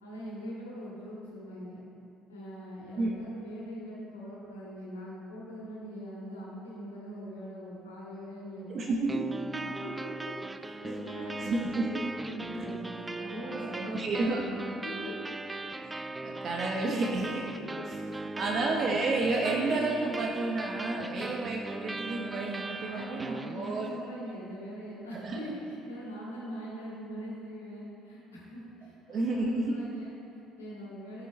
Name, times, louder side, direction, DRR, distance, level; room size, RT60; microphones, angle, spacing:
voice 1, 0.0-1.8 2.3-9.2 9.6-15.2 17.5-17.7 18.0-18.7 21.0-21.3 22.8-31.3, equal, 85° left, -6 dB, 1.9 m, -42 dB
voice 2, 8.7-9.4 11.4-11.9 13.4-14.4 15.8-15.9 16.2-17.5 18.3-23.9 25.2-25.4 29.1-30.0, right 2 dB, 45° right, 0 dB, 0.8 m, -31 dB
sound 1, 9.1-24.1, right 2 dB, 15° right, 0.4 m, -39 dB
10.0 x 6.8 x 4.1 m, 2.6 s
figure-of-eight pair, 55°, 0 cm